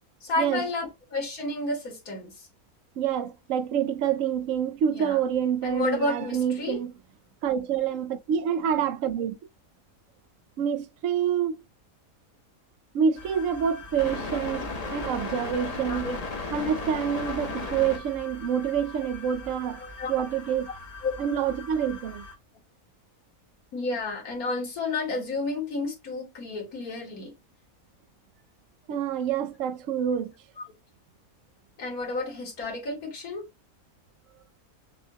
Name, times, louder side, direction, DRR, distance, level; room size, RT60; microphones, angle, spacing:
voice 1, 0.2-2.5 4.9-5.2 5.6-6.8 14.9-15.0 15.9-16.2 19.8-20.2 21.0-21.1 23.7-27.3 31.8-33.4, left 2 dB, 85° left, 2.2 m, -31 dB
voice 2, 3.0-6.9 7.4-9.4 10.6-11.6 12.9-14.6 14.9-16.1 16.5-19.8 20.1-20.7 21.2-22.2 28.9-30.3, right 8 dB, 70° right, 1.0 m, -27 dB
sound 1, 13.2-22.3, left 3 dB, 30° left, 0.9 m, -37 dB
6.3 x 2.3 x 2.8 m
omnidirectional pair, 1.5 m